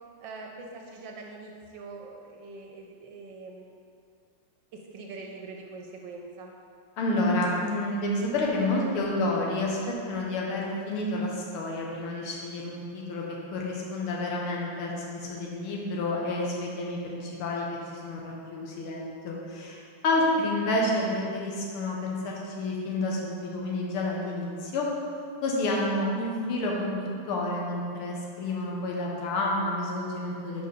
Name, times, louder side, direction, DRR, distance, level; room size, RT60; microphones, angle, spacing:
voice 1, 0.2-3.7 4.9-6.5 19.6-19.7 20.1-20.4, right 3 dB, 70° right, 1 dB, 1.2 m, -43 dB
voice 2, 7.0-13.2 13.5-17.7 17.9-24.9 25.4-30.7, left 2 dB, 85° left, -2 dB, 1.9 m, -29 dB
5.0 x 4.7 x 5.3 m, 2.4 s
omnidirectional pair, 2.3 m